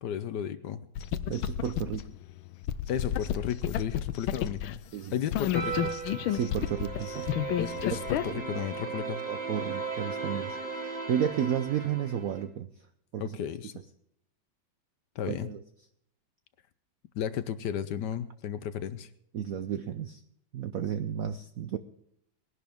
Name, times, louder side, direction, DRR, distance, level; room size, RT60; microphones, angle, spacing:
voice 1, 0.0-0.9 2.9-4.8 5.1-5.9 7.6-9.2 13.2-13.7 15.2-15.5 17.1-19.1, left 9 dB, 70° left, 13 dB, 1.2 m, -33 dB
sound 1, 0.9-4.8 5.3-8.3, left 10 dB, 90° left, 1.5 m, -32 dB
voice 2, 1.3-2.1 4.9-5.1 6.3-7.3 8.3-8.6 9.3-12.7 13.1-13.4 15.3-15.6 19.3-20.2 20.5-21.8, right 9 dB, 70° right, 9 dB, 0.8 m, -32 dB
sound 2, 5.5-12.4, right 4 dB, 20° right, 2.7 m, -37 dB
20.5 x 11.0 x 3.5 m, 0.72 s
omnidirectional pair, 2.2 m